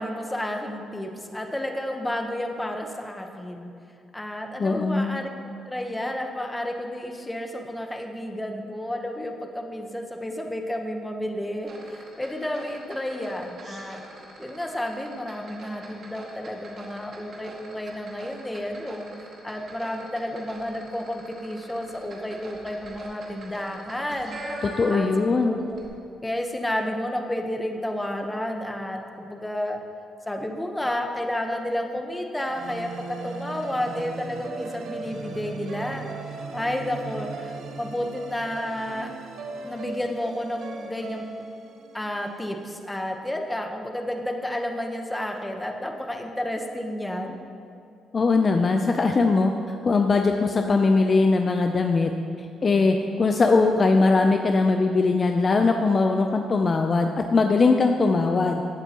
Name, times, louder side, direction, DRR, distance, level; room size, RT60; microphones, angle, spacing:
voice 1, 0.0-3.7 4.1-5.3 5.6-14.0 14.4-19.1 19.4-24.4 24.9-25.8 26.2-29.8 30.3-36.0 36.5-39.1 39.6-41.3 41.9-47.4, left 1 dB, 10° left, 3 dB, 1.0 m, -31 dB
voice 2, 4.6-5.2 24.6-25.6 48.1-52.1 52.6-58.6, left 3 dB, 40° left, 5 dB, 0.5 m, -21 dB
sound 1, 11.6-25.4 25.7-25.9, right 1 dB, 50° right, 2.0 m, -42 dB
sound 2, 32.4-42.7, right 4 dB, 75° right, 0.9 m, -38 dB
15.0 x 8.1 x 3.0 m, 2.6 s
cardioid pair, 90°, 0 cm